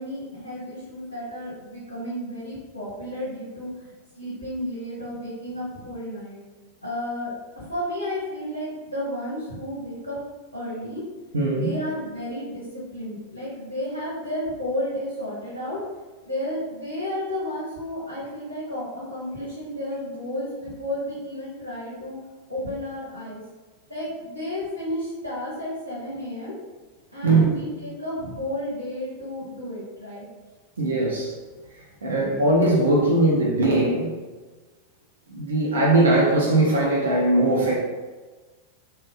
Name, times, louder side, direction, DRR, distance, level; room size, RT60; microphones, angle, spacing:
voice 1, 0.0-6.4 6.8-10.2 10.5-11.0 11.5-15.8 16.2-22.2 22.5-23.4 23.9-26.6 27.1-30.3, left 1 dB, 85° left, -9 dB, 0.9 m, -32 dB
voice 2, 11.3-11.7 27.2-27.5 30.8-31.3 32.0-34.2 35.3-37.8, right 2 dB, 70° right, -3 dB, 0.5 m, -20 dB
3.3 x 2.0 x 3.4 m, 1.3 s
figure-of-eight pair, 90°, 0 cm